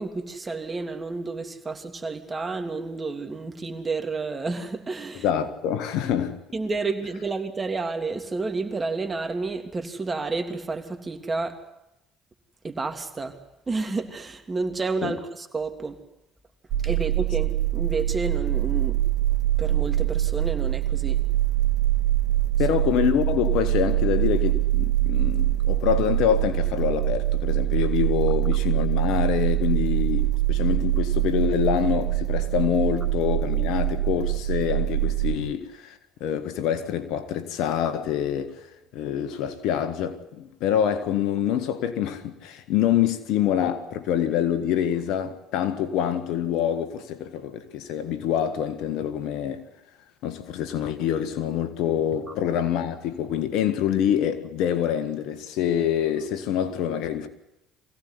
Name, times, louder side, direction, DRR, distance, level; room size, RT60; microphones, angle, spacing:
voice 1, 0.0-5.2 6.5-11.6 12.6-13.3 13.7-16.0 16.8-19.0 19.6-21.2, right 3 dB, 30° right, 3.1 m, -30 dB
voice 2, 5.1-6.4 15.0-15.2 22.6-38.7 38.9-49.6 50.2-57.3, left 9 dB, 70° left, 1.8 m, -26 dB
sound 1, 16.7-35.4, right 15 dB, 65° right, 2.7 m, -24 dB
24.0 x 17.0 x 9.9 m
hypercardioid pair, 65°, 0 cm